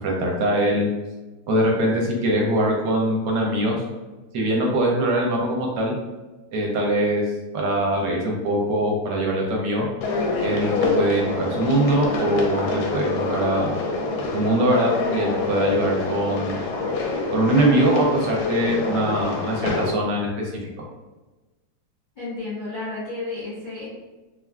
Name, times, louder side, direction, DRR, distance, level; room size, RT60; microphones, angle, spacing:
voice 1, 0.0-0.9 1.5-3.8 4.3-5.9 6.5-7.2 7.5-9.9 10.4-13.7 14.3-16.6 17.3-20.5, right 1 dB, 70° right, -1 dB, 1.1 m, -22 dB
sound 1, 10.0-19.9, left 3 dB, 90° left, 1.3 m, -26 dB
voice 2, 22.1-23.9, left 3 dB, 35° left, -10 dB, 0.8 m, -32 dB
3.3 x 2.4 x 2.2 m, 1.2 s
omnidirectional pair, 2.1 m